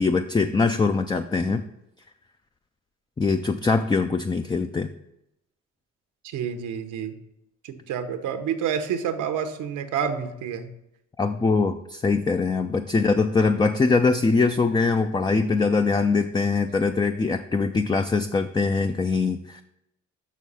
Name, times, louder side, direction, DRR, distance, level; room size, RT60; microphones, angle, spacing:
voice 1, 0.0-1.6 3.2-4.9 11.2-19.6, left 4 dB, 15° left, 7 dB, 0.4 m, -22 dB
voice 2, 6.2-7.1 7.6-10.7, right 7 dB, 90° right, 7 dB, 1.0 m, -29 dB
6.3 x 6.3 x 5.4 m, 0.84 s
cardioid pair, 90°, 30 cm